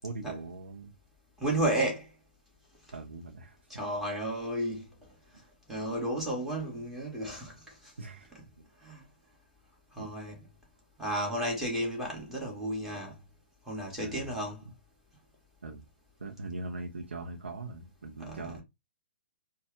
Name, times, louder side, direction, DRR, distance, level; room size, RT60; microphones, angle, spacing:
voice 1, 0.0-0.9 2.9-3.6 8.0-8.6 10.0-10.1 14.0-14.3 15.6-15.8 16.2-18.6, right 3 dB, 70° right, 0.8 m, -41 dB
voice 2, 1.4-2.1 3.7-4.9 5.7-7.9 8.3-8.5 8.8-9.0 9.9-10.4 11.0-13.2 13.7-14.6 18.2-18.5, right 1 dB, 5° right, 2.1 m, -33 dB
4.4 x 2.4 x 3.3 m
figure-of-eight pair, 125°, 6 cm